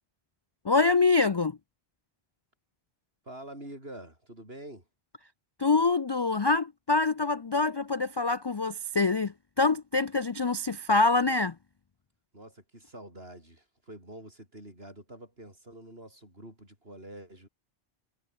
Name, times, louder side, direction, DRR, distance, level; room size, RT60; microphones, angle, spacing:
voice 1, 0.6-1.6 5.6-11.6, left 3 dB, 35° left, 0.4 m, -25 dB
voice 2, 3.2-4.9 12.3-17.5, right 1 dB, 65° right, 8.3 m, -46 dB
omnidirectional pair, 1.1 m